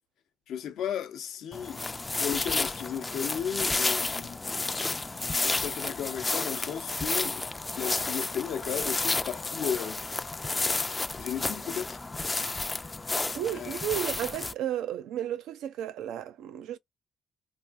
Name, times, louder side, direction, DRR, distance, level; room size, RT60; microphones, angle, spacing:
voice 1, 0.5-1.9 2.2-4.4 5.4-7.4 7.8-10.0 11.2-12.0 13.5-13.8, left 8 dB, 80° left, 0.7 m, -34 dB
sound 1, 1.5-14.5, left 3 dB, 20° left, 0.4 m, -31 dB
voice 2, 13.3-16.8, right 11 dB, 85° right, 0.4 m, -33 dB
3.4 x 2.3 x 2.5 m
cardioid pair, 90°, 0 cm